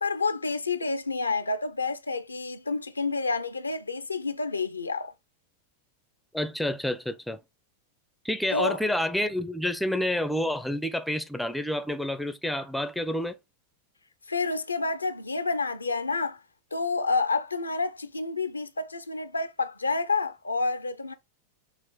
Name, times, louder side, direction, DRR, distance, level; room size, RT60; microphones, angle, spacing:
voice 1, 0.0-5.1 8.5-8.8 14.3-16.4 16.7-21.1, left 3 dB, 80° left, 0.5 m, -29 dB
voice 2, 6.3-7.4 8.2-13.4, left 1 dB, ahead, 0.5 m, -29 dB
5.6 x 2.5 x 3.5 m
figure-of-eight pair, 90°, 0 cm